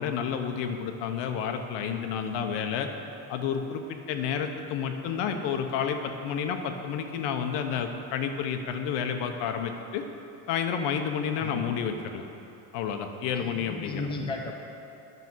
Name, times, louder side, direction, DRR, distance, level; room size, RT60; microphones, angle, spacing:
voice 1, 0.0-2.9 3.3-10.0 10.5-12.2 12.7-14.1, left 7 dB, 80° left, 5 dB, 1.0 m, -30 dB
voice 2, 13.3-14.5, left 2 dB, 10° left, 1 dB, 0.7 m, -35 dB
11.0 x 6.8 x 6.1 m, 2.7 s
cardioid pair, 175°, 42 cm